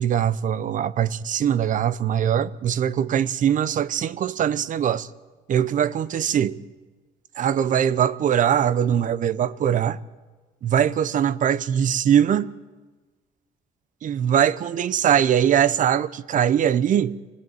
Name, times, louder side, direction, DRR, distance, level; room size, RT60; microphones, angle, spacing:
voice 1, 0.0-5.1 5.5-6.6 7.4-10.0 10.6-12.5 14.0-17.2, right 9 dB, 50° right, 0.8 m, -21 dB
24.5 x 17.5 x 9.2 m
cardioid pair, 110°, 17 cm